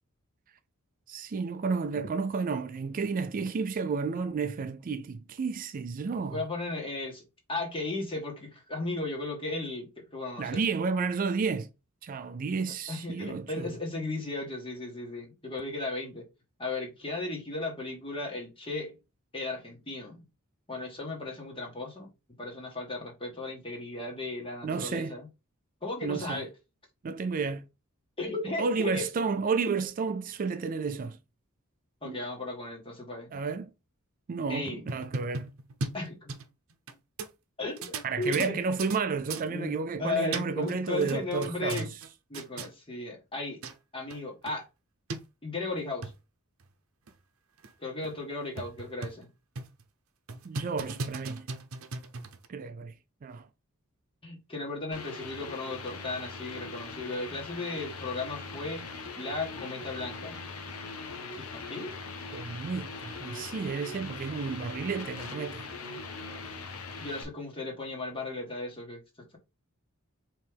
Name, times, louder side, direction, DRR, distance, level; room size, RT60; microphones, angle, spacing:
voice 1, 1.1-6.4 10.4-11.7 12.0-13.7 24.6-25.1 26.0-26.4 27.0-27.6 28.6-31.2 32.0-32.2 33.3-33.7 34.3-35.5 38.0-41.9 50.4-51.5 52.5-53.0 53.2-53.5 62.3-65.7, right 5 dB, 40° right, 0.3 m, -31 dB
voice 2, 6.3-7.2 7.5-10.6 12.9-16.3 16.6-18.9 19.3-20.2 20.7-22.1 22.4-25.3 25.8-26.5 28.2-29.1 32.0-33.3 34.5-34.8 35.9-36.4 37.6-38.6 39.5-41.9 42.3-43.6 43.9-44.6 45.4-46.1 47.8-49.3 54.2-58.8 59.2-60.4 61.4-62.0 66.7-69.0, left 2 dB, 25° left, 1.5 m, -35 dB
sound 1, 34.7-36.9 37.2-37.3 37.8-39.0 39.3-39.5 40.1-40.7 41.0-42.1 42.3-42.7 43.3-43.4 43.6-43.7 44.1-44.2 44.5-44.6 45.1-45.2 45.8-46.1 46.6-46.7 47.1-47.2 47.6-47.7 48.0-48.1 48.6-49.2 49.6-49.8 50.3-52.5, right 3 dB, 70° right, 0.7 m, -37 dB
sound 2, 54.9-67.2, left 4 dB, 80° left, 0.9 m, -41 dB
4.6 x 3.1 x 3.5 m
head